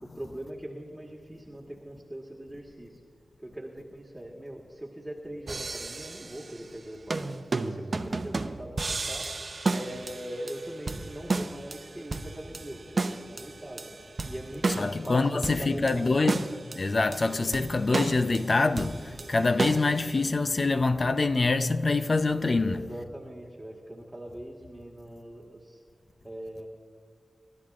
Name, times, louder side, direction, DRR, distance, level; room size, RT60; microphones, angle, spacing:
voice 1, 0.0-3.0 3.4-7.3 7.6-9.3 9.6-13.9 14.2-16.3 22.5-25.8 26.2-26.7, right 1 dB, 10° right, 1.7 m, -41 dB
sound 1, 5.5-6.7 7.1-20.3, right 3 dB, 50° right, 0.7 m, -33 dB
voice 2, 14.8-16.4 16.7-22.8, left 3 dB, 50° left, 0.6 m, -25 dB
27.0 x 12.0 x 2.5 m
cardioid pair, 65°, 0 cm